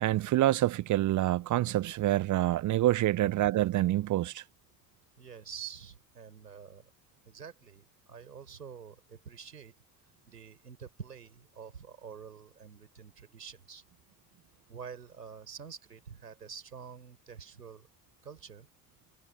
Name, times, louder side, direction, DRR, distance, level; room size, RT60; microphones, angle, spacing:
voice 1, 0.0-4.4, right 15 dB, 40° right, 0.7 m, -27 dB
voice 2, 5.2-6.9 7.3-9.7 10.3-13.8 14.7-17.9 18.2-18.7, right 7 dB, 85° right, 4.8 m, -47 dB
figure-of-eight pair, 55°, 47 cm